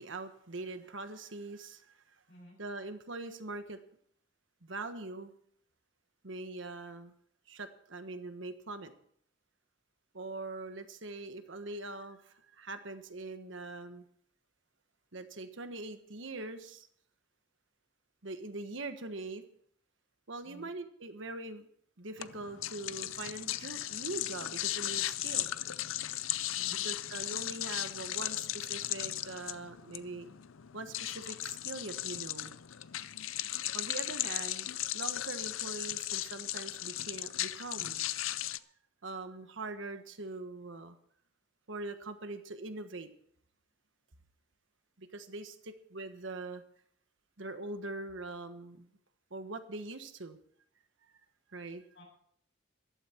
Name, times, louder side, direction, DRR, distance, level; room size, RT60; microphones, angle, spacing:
voice 1, 0.0-2.1 2.6-3.8 4.6-5.3 6.2-7.1 7.5-8.9 10.1-14.0 15.1-16.9 18.2-19.4 20.3-21.7 22.0-25.5 26.7-30.3 30.7-32.6 33.7-38.1 39.0-41.0 41.7-43.1 45.0-46.6 47.4-48.9 49.3-50.4 51.5-51.8, right 2 dB, 75° right, 8 dB, 1.3 m, -42 dB
voice 2, 2.3-2.6 20.4-20.7 26.5-26.8 51.9-52.0, equal, 60° left, 0 dB, 6.9 m, -54 dB
sound 1, 22.2-38.6, left 14 dB, 85° left, 0.6 m, -37 dB
14.5 x 12.5 x 4.5 m, 0.64 s
head